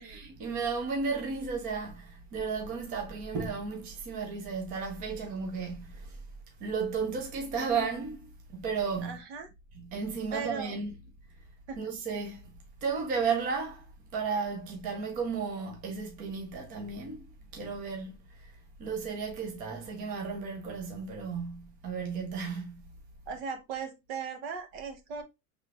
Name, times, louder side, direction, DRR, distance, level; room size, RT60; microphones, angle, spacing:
voice 1, 0.0-6.2 6.6-9.2 9.7-11.1 11.8-12.5 12.8-13.9 14.1-17.3 17.5-18.5 18.8-22.8, right 5 dB, 20° right, 0.7 m, -34 dB
voice 2, 9.0-9.5 10.3-10.8 11.7-11.8 23.3-25.2, right 6 dB, 50° right, 1.0 m, -38 dB
5.1 x 3.4 x 2.4 m
supercardioid pair, 175°, 40 cm